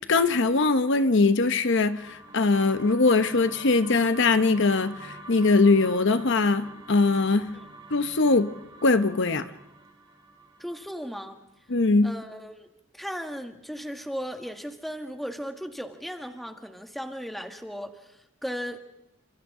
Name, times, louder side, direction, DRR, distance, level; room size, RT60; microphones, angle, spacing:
voice 1, 0.1-7.5 7.9-8.5 8.8-9.5 11.7-12.1, left 3 dB, 65° left, 0.9 m, -21 dB
sound 1, 1.5-11.7, right 1 dB, 25° right, 4.7 m, -46 dB
voice 2, 10.6-11.4 12.0-18.8, equal, ahead, 1.6 m, -36 dB
29.5 x 27.0 x 3.8 m
head